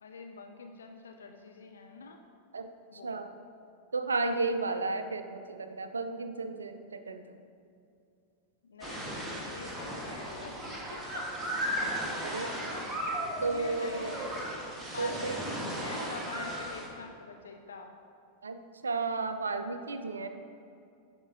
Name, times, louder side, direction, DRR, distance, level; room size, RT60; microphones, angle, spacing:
voice 1, 0.0-2.2 2.9-3.1 8.6-10.5 10.9-11.3 11.6-14.4 14.9-17.9 20.1-20.3, left 4 dB, 70° left, 4 dB, 0.4 m, -46 dB
voice 2, 3.9-7.2 12.2-12.5 13.4-14.2 15.0-15.3 18.4-20.3, right 3 dB, 75° right, 9 dB, 0.4 m, -33 dB
sound 1, 8.8-16.9, equal, 10° right, 1.2 m, -36 dB
9.7 x 4.3 x 2.6 m, 2.5 s
figure-of-eight pair, 90°, 0 cm